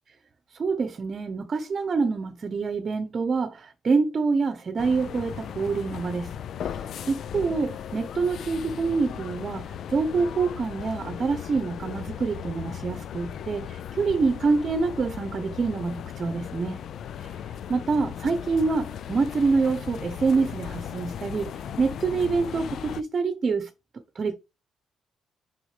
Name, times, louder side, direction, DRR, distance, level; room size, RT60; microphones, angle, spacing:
voice 1, 0.5-6.3 6.6-16.8 17.2-17.4 17.7-23.7 24.1-24.4, right 4 dB, 40° right, 0.9 m, -26 dB
sound 1, 4.8-23.0, left 9 dB, 65° left, 0.4 m, -37 dB
6.3 x 5.3 x 3.2 m
cardioid pair, 90°, 0 cm